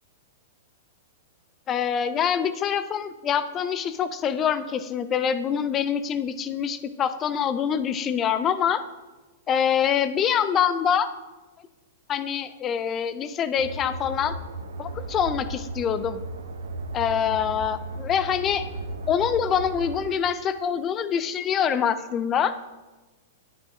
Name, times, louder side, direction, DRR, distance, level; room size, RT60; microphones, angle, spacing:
voice 1, 1.7-8.8 9.5-11.1 12.1-14.3 14.8-16.2 16.9-18.7 19.1-22.5, left 8 dB, 30° left, 12 dB, 0.5 m, -25 dB
sound 1, 13.6-20.0, right 2 dB, 85° right, 0.9 m, -35 dB
9.9 x 9.2 x 2.5 m, 1.2 s
hypercardioid pair, 120°, 0 cm